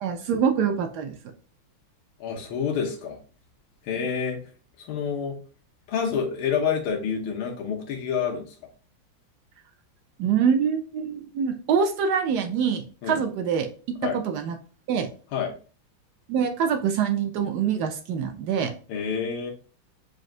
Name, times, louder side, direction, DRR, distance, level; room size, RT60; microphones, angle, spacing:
voice 1, 0.0-1.1 10.2-13.7 14.1-14.6 14.9-15.1 16.3-18.7, right 7 dB, 75° right, 6 dB, 0.9 m, -25 dB
voice 2, 2.2-3.2 3.8-4.4 4.8-5.4 5.9-8.5 13.0-13.2 14.0-14.2 15.3-15.5 18.9-19.5, left 6 dB, 80° left, 1 dB, 1.6 m, -28 dB
4.2 x 2.6 x 3.7 m, 0.39 s
omnidirectional pair, 2.2 m